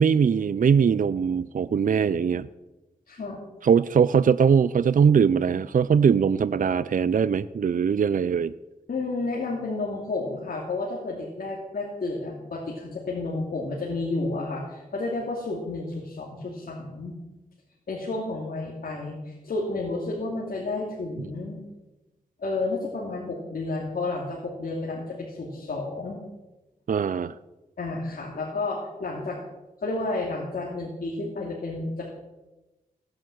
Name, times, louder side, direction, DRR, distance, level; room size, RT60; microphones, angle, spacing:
voice 1, 0.0-2.5 3.6-8.5 26.9-27.3, right 6 dB, 65° right, 15 dB, 0.5 m, -21 dB
voice 2, 3.1-3.4 8.9-17.2 17.9-21.6 22.4-26.2 27.8-29.4 29.8-32.1, left 3 dB, 80° left, -2 dB, 2.8 m, -31 dB
16.5 x 9.8 x 7.7 m, 1.1 s
cardioid pair, 60°, 15 cm